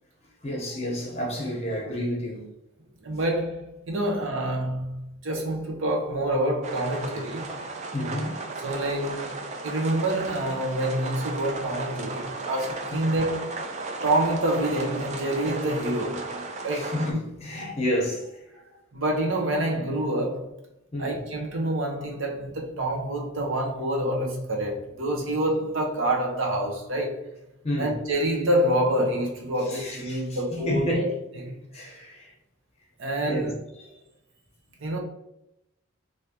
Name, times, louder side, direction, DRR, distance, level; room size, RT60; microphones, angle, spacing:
voice 1, 0.4-2.5 7.9-8.4 12.9-13.1 16.7-18.4 20.9-21.2 27.6-28.0 29.6-31.1 31.7-32.3 33.3-34.0, equal, 30° left, 0.9 m, -30 dB
voice 2, 3.0-7.5 8.6-13.7 14.0-16.9 18.9-20.5 21.0-27.2 27.8-31.1 31.4-31.5 33.0-33.5 34.8-35.0, right 1 dB, 65° right, 0.8 m, -27 dB
sound 1, 6.6-17.1, right 3 dB, 35° right, 0.3 m, -35 dB
3.4 x 2.7 x 2.8 m
head